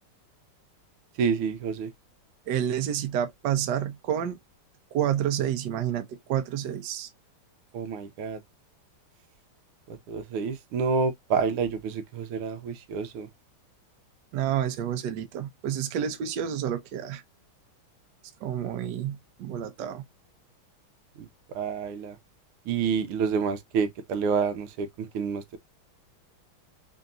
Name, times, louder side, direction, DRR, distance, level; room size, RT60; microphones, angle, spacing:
voice 1, 1.2-1.9 7.7-8.4 10.1-13.3 21.2-21.3 21.5-22.1 22.7-24.9 25.1-25.4, right 5 dB, 85° right, 1.6 m, -28 dB
voice 2, 2.5-4.4 4.9-7.1 14.3-17.2 18.4-20.0, right 10 dB, 65° right, 1.2 m, -29 dB
3.8 x 3.5 x 2.5 m
omnidirectional pair, 2.3 m